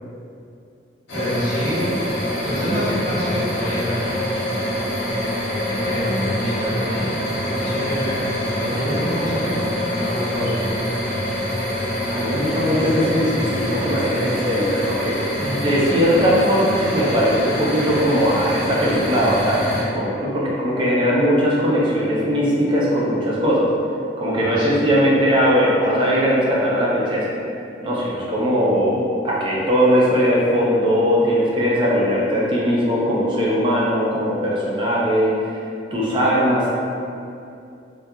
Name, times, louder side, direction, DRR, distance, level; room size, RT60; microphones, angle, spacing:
sound 1, 1.1-19.8, equal, 80° left, 0.7 m, -25 dB
voice 1, 1.1-1.9 2.4-4.2 5.6-7.1 7.6-8.2 8.6-10.8 24.4-24.8, equal, 45° left, -13 dB, 1.2 m, -27 dB
voice 2, 12.1-23.7 24.2-27.3 27.8-35.3 35.9-36.7, equal, 25° right, -6 dB, 0.4 m, -19 dB
2.3 x 2.2 x 2.7 m, 2.6 s
head